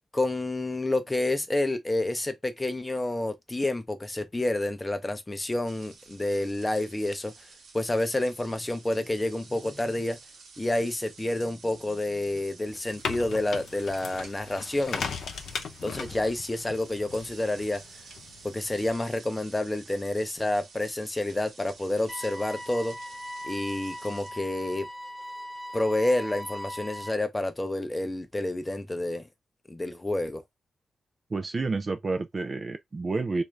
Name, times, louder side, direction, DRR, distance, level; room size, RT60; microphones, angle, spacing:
voice 1, 0.1-7.3 7.7-10.2 10.6-15.1 15.8-17.8 18.4-23.0 23.4-24.9 25.7-29.2 29.7-30.4, left 1 dB, 15° left, 0.6 m, -29 dB
sound 1, 5.6-24.3, right 4 dB, 80° right, 0.9 m, -51 dB
sound 2, 12.7-18.9, left 5 dB, 75° left, 0.6 m, -38 dB
sound 3, 22.1-27.1, equal, 5° right, 0.9 m, -39 dB
voice 2, 31.3-33.4, right 3 dB, 30° right, 0.3 m, -29 dB
3.4 x 2.5 x 3.2 m
wide cardioid pair, 135°, 0 cm